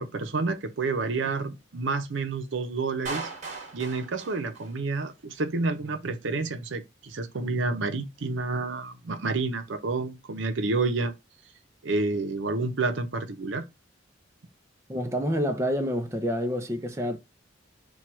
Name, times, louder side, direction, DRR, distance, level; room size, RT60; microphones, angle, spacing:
voice 1, 0.0-3.3 3.7-11.1 11.8-13.7, right 3 dB, 75° right, 0.7 m, -29 dB
Clapping, 3.0-5.1, right 4 dB, 40° right, 1.4 m, -38 dB
voice 2, 14.9-17.2, equal, 15° right, 0.5 m, -28 dB
4.5 x 2.3 x 4.4 m
head